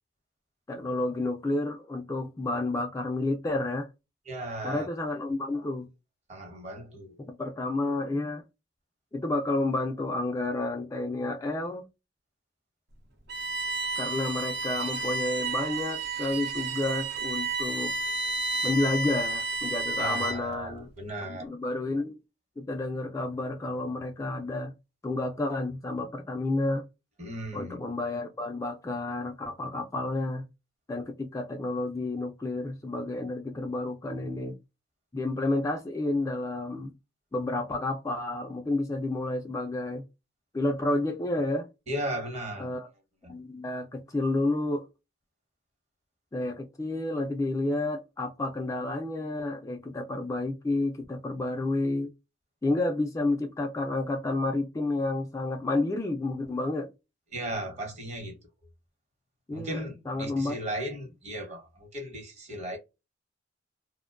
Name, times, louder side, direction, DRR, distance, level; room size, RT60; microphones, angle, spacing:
voice 1, 0.7-3.9 4.6-5.9 7.2-8.4 9.1-11.8 14.0-17.9 18.6-20.9 21.3-22.2 22.6-24.7 25.0-26.8 27.5-30.4 30.9-34.6 35.1-36.9 37.3-40.0 40.5-41.7 42.6-42.9 43.3-44.9 46.3-52.1 52.6-56.9 59.5-60.6, left 2 dB, 15° left, 0.3 m, -30 dB
voice 2, 4.3-4.9 6.3-7.3 20.0-21.4 27.2-27.8 41.9-42.7 43.2-43.4 57.3-58.4 59.5-62.8, right 1 dB, 40° right, 1.0 m, -36 dB
Bowed string instrument, 13.3-20.5, right 3 dB, 65° right, 0.7 m, -31 dB
2.5 x 2.2 x 2.4 m
head